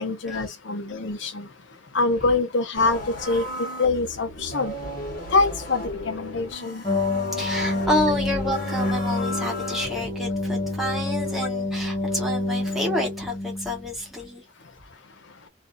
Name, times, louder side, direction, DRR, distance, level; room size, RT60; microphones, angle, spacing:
voice 1, 0.0-1.5 1.9-3.0 3.3-4.7 5.3-6.8, left 3 dB, 70° left, 0.7 m, -24 dB
sound 1, 2.7-10.1, left 1 dB, 50° left, 1.2 m, -35 dB
sound 2, 6.8-13.9, left 2 dB, 25° left, 1.0 m, -28 dB
voice 2, 7.3-14.4, left 1 dB, ahead, 1.2 m, -29 dB
2.6 x 2.4 x 2.5 m
head